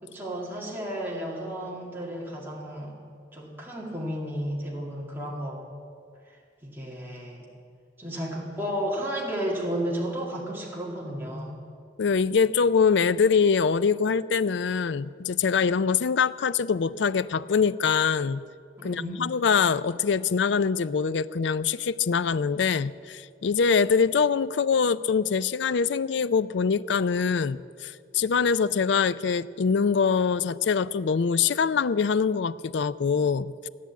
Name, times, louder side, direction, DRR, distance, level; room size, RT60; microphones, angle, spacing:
voice 1, 0.0-3.0 3.3-5.6 6.2-6.4 6.6-7.5 8.0-11.6 18.8-19.4, equal, 10° right, -4 dB, 2.2 m, -33 dB
voice 2, 12.0-18.4 18.8-33.7, left 5 dB, 80° left, 16 dB, 0.4 m, -24 dB
16.5 x 10.5 x 8.3 m, 2.3 s
head